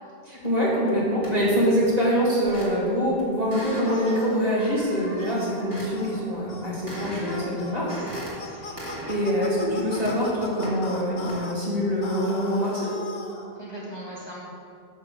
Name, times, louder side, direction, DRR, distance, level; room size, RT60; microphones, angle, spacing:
voice 1, 0.3-8.0 8.5-8.8 9.1-12.9, equal, 40° right, -7 dB, 2.4 m, -24 dB
sound 1, 1.2-1.5 2.4-3.0 3.5-5.9 6.9-7.6 7.9-8.3 8.8-9.2 9.6-10.1 10.6-10.8 11.3-11.4, right 1 dB, 20° right, 2.4 m, -38 dB
sound 2, 3.8-4.4 5.2-5.5 6.0-6.2 6.5-6.7 6.9-11.5 12.0-13.5, left 3 dB, 80° left, 1.2 m, -39 dB
voice 2, 8.1-8.6 13.5-14.4, right 1 dB, 25° left, -6 dB, 1.4 m, -40 dB
6.6 x 6.5 x 6.6 m, 2.5 s
omnidirectional pair, 1.0 m